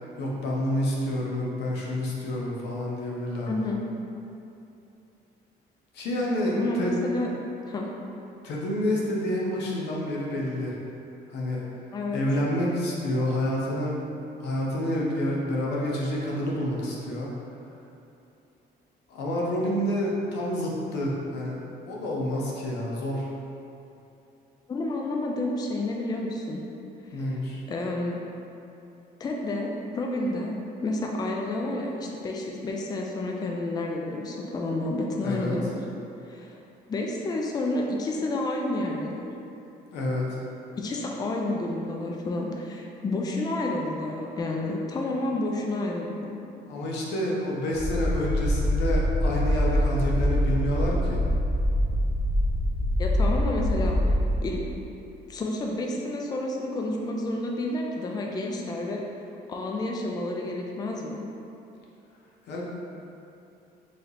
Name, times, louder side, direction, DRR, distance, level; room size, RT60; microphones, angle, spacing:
voice 1, 0.2-3.5 5.9-7.0 8.4-10.8 11.3-11.6 12.1-14.0 14.4-17.3 19.1-21.6 21.9-23.3 27.1-27.6 35.2-35.5 39.9-40.4 46.7-51.2 62.5-62.6, left 1 dB, 85° left, -3 dB, 0.7 m, -28 dB
voice 2, 3.4-3.8 6.5-7.3 7.7-7.9 11.9-12.2 24.7-26.6 27.0-27.4 27.7-28.2 29.2-30.5 30.8-35.7 36.2-36.6 36.9-39.3 40.7-46.4 53.0-53.9 54.4-54.8 55.3-59.0 59.5-61.2, left 2 dB, 25° left, -1 dB, 0.4 m, -30 dB
sound 1, 47.7-54.3, equal, ahead, 0.9 m, -24 dB
3.2 x 2.8 x 3.9 m, 2.8 s
cardioid pair, 120°, 17 cm